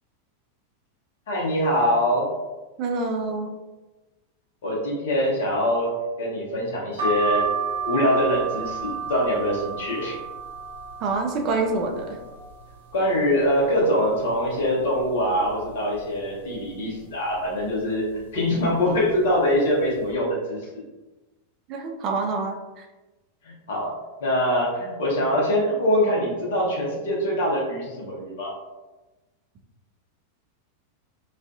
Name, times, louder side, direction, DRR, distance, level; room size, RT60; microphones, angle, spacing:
voice 1, 1.3-2.3 4.6-7.4 7.8-10.2 12.9-20.8 23.7-23.9 24.2-28.5, equal, 55° left, -3 dB, 0.9 m, -23 dB
voice 2, 2.8-3.5 11.0-12.2 21.7-22.8, right 3 dB, 35° right, 2 dB, 0.4 m, -26 dB
sound 1, 7.0-12.7 13.1-13.9 14.3-14.4 14.5-15.7 16.2-16.5 17.3-17.6 18.4-18.6 18.9-19.1, right 6 dB, 65° right, 0.7 m, -31 dB
2.4 x 2.3 x 2.6 m, 1.1 s
figure-of-eight pair, 90°, 0 cm